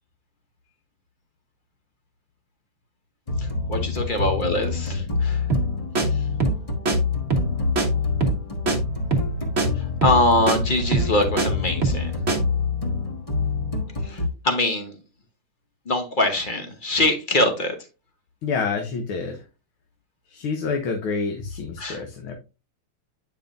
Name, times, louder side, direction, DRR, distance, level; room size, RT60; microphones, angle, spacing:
sound 1, 3.3-14.3, left 4 dB, 20° left, 1.0 m, -26 dB
voice 1, 3.7-5.4 10.0-12.1 14.1-14.2 14.4-14.9 15.9-17.7 21.8-22.0, left 1 dB, 40° left, 6 dB, 0.7 m, -23 dB
sound 2, 5.5-5.7 5.9-6.1 6.4-6.6 6.8-7.0 7.3-7.5 7.8-7.9 8.2-8.4 8.7-8.8 9.1-9.3 9.6-9.7 10.0-10.2 10.5-10.6 10.9-11.5 11.8-12.0 12.3-12.4, right 3 dB, 35° right, 1.4 m, -22 dB
voice 2, 18.4-19.4 20.3-22.4, left 5 dB, 80° left, 4 dB, 1.8 m, -28 dB
8.9 x 5.5 x 2.5 m, 0.30 s
omnidirectional pair, 2.3 m